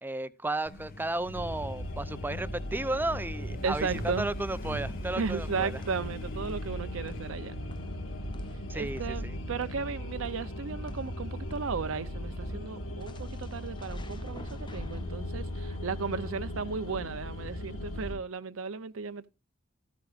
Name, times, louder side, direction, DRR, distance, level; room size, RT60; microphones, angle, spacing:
voice 1, 0.0-5.7 8.7-9.4, right 2 dB, 10° right, 0.5 m, -34 dB
Truck, 0.7-13.0, equal, 45° left, 1.2 m, -45 dB
sound 1, 1.3-18.1, left 1 dB, 80° left, 1.8 m, -38 dB
voice 2, 3.6-4.3 5.2-7.5 8.7-19.3, right 5 dB, 80° right, 0.6 m, -35 dB
sound 2, 5.0-11.9 13.0-17.0, left 1 dB, 25° left, 1.0 m, -49 dB
14.0 x 13.0 x 2.5 m
head